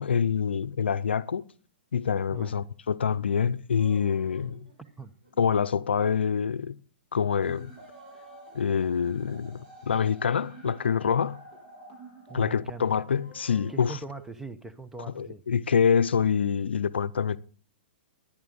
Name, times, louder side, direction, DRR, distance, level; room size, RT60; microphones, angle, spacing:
voice 1, 0.0-1.4 1.9-4.6 5.4-6.8 7.1-7.7 8.5-11.4 12.3-14.0 15.1-17.4, left 7 dB, 85° left, 0.6 m, -26 dB
sound 1, 3.5-5.3 7.7-9.6 10.0-10.2 13.1-14.3, right 1 dB, 65° right, 6.8 m, -53 dB
voice 2, 4.8-5.1 12.3-12.9 13.7-15.4, right 3 dB, 5° right, 0.8 m, -41 dB
sound 2, 7.4-13.4, right 2 dB, 40° right, 7.6 m, -50 dB
12.0 x 10.0 x 5.3 m
hypercardioid pair, 125°, 6 cm